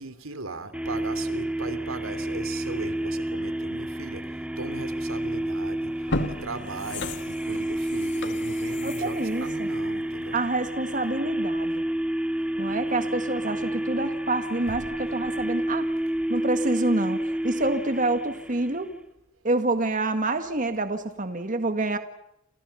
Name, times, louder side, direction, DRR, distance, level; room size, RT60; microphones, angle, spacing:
voice 1, 0.0-4.2 4.6-6.0 6.3-10.4 14.6-14.8, right 3 dB, 90° right, 11 dB, 3.2 m, -38 dB
sound 1, 0.7-19.0, right 1 dB, 5° right, 1.9 m, -30 dB
sound 2, 5.3-5.5 5.9-10.6 11.0-11.1, left 2 dB, 60° left, 2.5 m, -35 dB
voice 2, 8.8-9.7 10.3-11.8 12.6-15.9 16.3-18.9 19.4-22.0, right 2 dB, 40° right, 8 dB, 1.8 m, -27 dB
29.5 x 28.5 x 5.7 m, 0.86 s
head